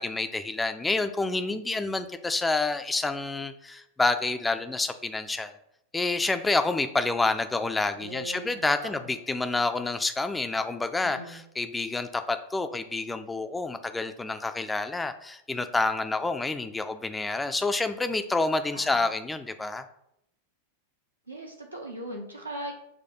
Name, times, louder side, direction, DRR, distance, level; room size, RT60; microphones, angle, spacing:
voice 1, 0.0-5.5 5.9-19.8, left 3 dB, 10° left, 9 dB, 0.3 m, -28 dB
voice 2, 8.0-9.1 11.0-11.4 18.7-19.1 21.3-22.7, right 1 dB, 85° right, -1 dB, 0.6 m, -39 dB
6.3 x 2.2 x 2.8 m, 0.77 s
figure-of-eight pair, 90°, 0 cm